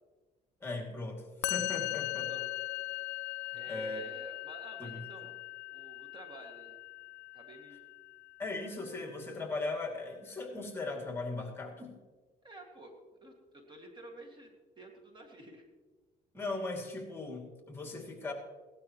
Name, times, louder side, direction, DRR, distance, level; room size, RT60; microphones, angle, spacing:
voice 1, 0.6-2.3 3.7-4.0 4.8-5.0 8.4-12.0 16.3-18.3, left 2 dB, 15° left, 0 dB, 2.5 m, -38 dB
Musical instrument, 1.4-8.7, left 19 dB, 75° left, 0.6 m, -39 dB
voice 2, 3.5-5.3 5.7-6.8 7.3-7.8 12.4-13.0 13.2-15.7, right 2 dB, 25° right, 2 dB, 2.1 m, -51 dB
17.5 x 12.5 x 3.1 m, 1.3 s
cardioid pair, 110°, 17 cm